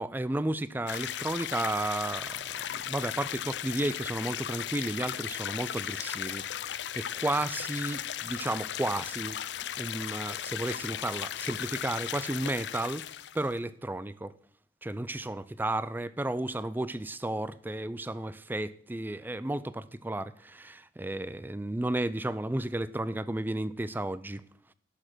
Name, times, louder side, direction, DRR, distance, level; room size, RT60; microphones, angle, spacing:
voice 1, 0.0-6.4 6.9-9.4 9.8-13.1 13.3-14.3 14.8-24.4, right 1 dB, 10° right, 0.4 m, -33 dB
sound 1, 0.9-13.5, left 10 dB, 70° left, 0.5 m, -36 dB
11.5 x 6.2 x 6.2 m
head